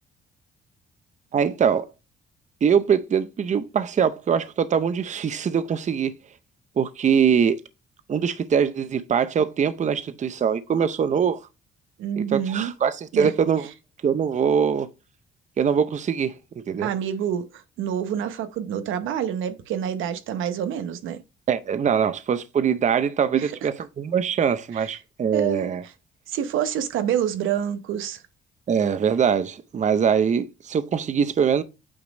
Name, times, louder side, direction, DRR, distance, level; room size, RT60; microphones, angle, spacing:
voice 1, 1.3-1.9 2.6-6.1 6.8-7.6 8.1-11.4 12.2-13.7 14.0-14.9 15.6-16.9 21.5-25.8 28.7-31.6, right 7 dB, 35° right, 0.6 m, -23 dB
voice 2, 12.0-12.7 13.1-13.3 16.8-21.2 23.3-23.5 24.7-24.9 25.3-25.7 26.3-28.2, right 9 dB, 85° right, 0.8 m, -27 dB
8.7 x 3.0 x 5.1 m
cardioid pair, 90°, 20 cm